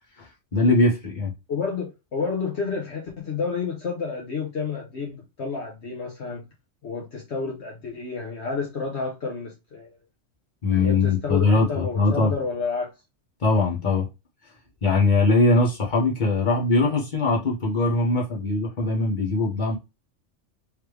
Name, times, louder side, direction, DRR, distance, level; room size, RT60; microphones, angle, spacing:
voice 1, 0.2-1.3 10.6-12.3 13.4-14.1 14.8-19.8, left 3 dB, 40° left, 1.5 m, -21 dB
voice 2, 1.5-6.4 6.8-10.0 10.7-12.9, left 5 dB, 65° left, 1.2 m, -30 dB
3.4 x 3.2 x 3.2 m
omnidirectional pair, 1.2 m